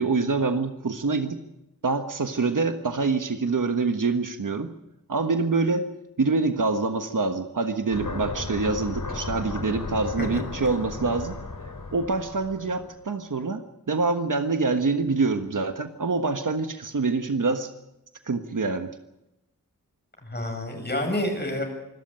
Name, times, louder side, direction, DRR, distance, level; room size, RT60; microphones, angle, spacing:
voice 1, 0.0-1.4 1.8-4.7 5.1-5.9 6.2-11.3 11.9-17.7 18.2-18.9, right 3 dB, 70° right, 7 dB, 1.4 m, -25 dB
sound 1, 7.9-12.9, left 3 dB, 70° left, 4.4 m, -34 dB
voice 2, 10.2-10.7 20.2-21.6, left 1 dB, 30° left, 4 dB, 6.9 m, -29 dB
26.0 x 13.5 x 8.9 m, 0.91 s
wide cardioid pair, 85°, 33 cm